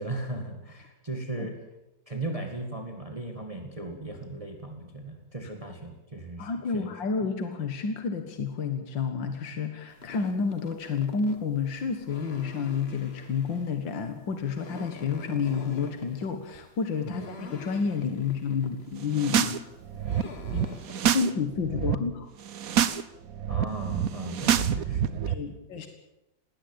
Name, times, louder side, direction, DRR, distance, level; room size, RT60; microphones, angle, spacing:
voice 1, 0.0-1.6 2.1-6.9 17.0-17.2 23.5-25.9, right 2 dB, 20° right, 4 dB, 2.0 m, -37 dB
voice 2, 6.4-19.6 20.5-20.7 21.1-22.3 25.3-25.9, left 5 dB, 75° left, 7 dB, 2.4 m, -30 dB
sound 1, 9.9-21.1, left 2 dB, 35° left, 2.1 m, -47 dB
sound 2, 19.0-19.6 19.9-21.3 21.6-22.0 22.4-23.0 23.3-25.3, right 9 dB, 55° right, 1.2 m, -27 dB
20.0 x 17.5 x 8.9 m, 0.93 s
omnidirectional pair, 2.0 m